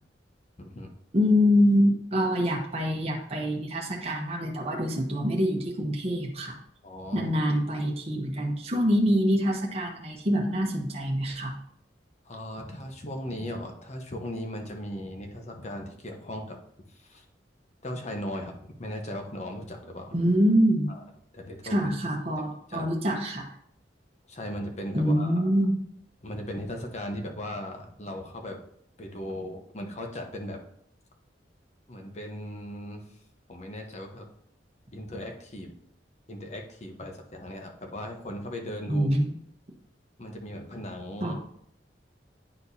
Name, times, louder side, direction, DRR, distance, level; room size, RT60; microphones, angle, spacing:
voice 1, 0.6-0.9 6.8-7.3 12.2-16.6 17.0-17.2 17.8-20.1 20.9-21.0 21.3-21.7 22.7-22.9 24.3-25.5 26.2-28.6 29.0-30.6 31.9-33.0 33.5-34.3 34.9-35.7 36.3-39.1 40.2-41.3, left 1 dB, 40° left, 3 dB, 1.0 m, -37 dB
voice 2, 1.1-6.6 7.1-11.5 20.1-20.9 21.7-23.5 24.9-25.8 38.9-39.4 41.2-41.3, equal, 35° right, -1 dB, 0.9 m, -25 dB
9.8 x 4.4 x 2.7 m, 0.69 s
head